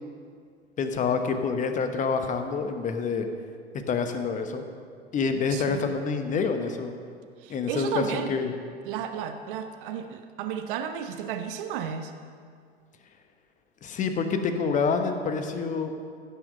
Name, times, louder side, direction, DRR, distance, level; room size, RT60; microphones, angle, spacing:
voice 1, 0.8-3.3 3.7-4.6 5.1-6.9 7.5-8.5 13.8-15.9, left 5 dB, 25° left, 7 dB, 1.0 m, -27 dB
voice 2, 5.5-6.0 7.4-8.3 8.8-12.1, right 8 dB, 55° right, 8 dB, 0.8 m, -33 dB
15.5 x 6.1 x 5.3 m, 2.2 s
figure-of-eight pair, 95°, 32 cm